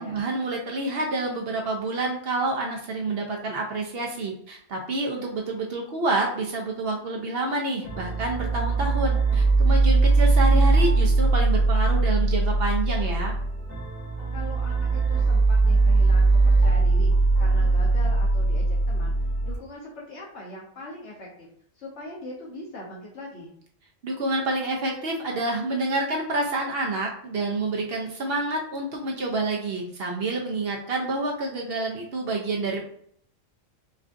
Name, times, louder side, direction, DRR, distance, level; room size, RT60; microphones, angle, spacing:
voice 1, 0.0-13.3 24.0-32.9, right 2 dB, 60° right, 0 dB, 0.7 m, -28 dB
sound 1, 7.8-19.6, right 3 dB, 90° left, 1.9 m, -21 dB
voice 2, 14.3-19.1 19.4-21.5 21.7-23.5, left 1 dB, 65° left, -4 dB, 1.1 m, -41 dB
4.3 x 2.4 x 2.5 m, 0.64 s
omnidirectional pair, 1.3 m